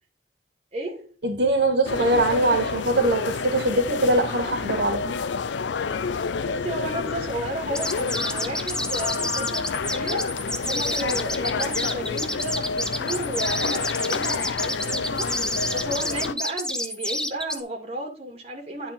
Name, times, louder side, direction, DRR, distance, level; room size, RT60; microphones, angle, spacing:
voice 1, 0.7-1.1 6.4-10.2 10.7-18.9, right 1 dB, 35° right, 2.2 m, -33 dB
voice 2, 1.2-5.2, right 1 dB, 70° right, 2.3 m, -22 dB
sound 1, 1.8-16.3, left 5 dB, 90° left, 0.5 m, -29 dB
sound 2, 7.7-17.6, left 1 dB, 5° left, 0.6 m, -29 dB
10.5 x 4.4 x 5.2 m
head